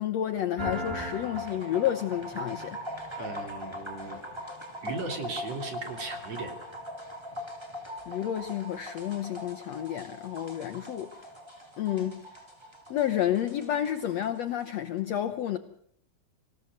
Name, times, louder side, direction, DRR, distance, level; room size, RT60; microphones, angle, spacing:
voice 1, 0.0-2.8 8.1-11.1 11.8-12.2 12.9-15.6, left 11 dB, 75° left, 1.5 m, -30 dB
sound 1, 0.6-14.7, equal, 10° right, 2.9 m, -40 dB
voice 2, 3.2-4.2 4.8-6.5, right 3 dB, 45° right, 4.1 m, -37 dB
26.5 x 17.0 x 6.6 m
omnidirectional pair, 4.2 m